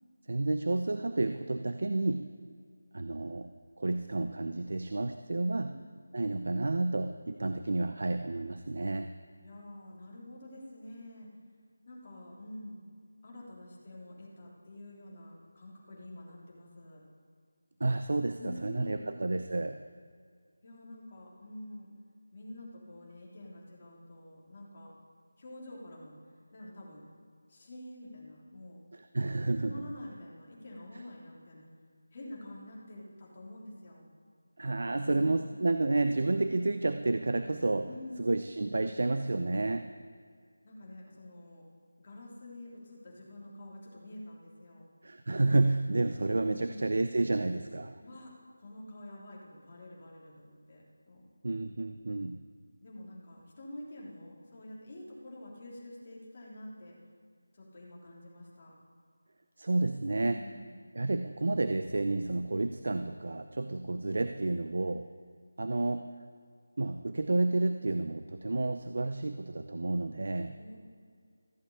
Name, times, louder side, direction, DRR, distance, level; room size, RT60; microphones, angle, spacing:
voice 1, 0.3-2.2 2.9-3.5 3.8-5.7 6.1-9.1 17.8-19.8 28.9-29.7 34.6-37.9 38.2-39.9 45.0-48.0 51.4-52.4 59.6-60.4 60.9-65.1 65.6-66.1 66.8-70.5, right 2 dB, 50° right, 9 dB, 0.7 m, -30 dB
voice 2, 9.4-11.3 11.8-12.8 13.2-17.0 18.4-19.1 20.6-21.9 22.3-24.9 25.4-26.1 26.5-27.0 27.5-28.9 29.6-31.7 32.1-34.1 37.8-38.2 40.6-41.6 42.0-44.9 46.4-46.8 48.0-51.3 52.8-56.9 57.5-58.7 60.1-60.8 70.5-70.8, left 1 dB, 25° left, -4 dB, 3.3 m, -47 dB
15.0 x 8.4 x 8.6 m, 2.1 s
figure-of-eight pair, 180°, 0 cm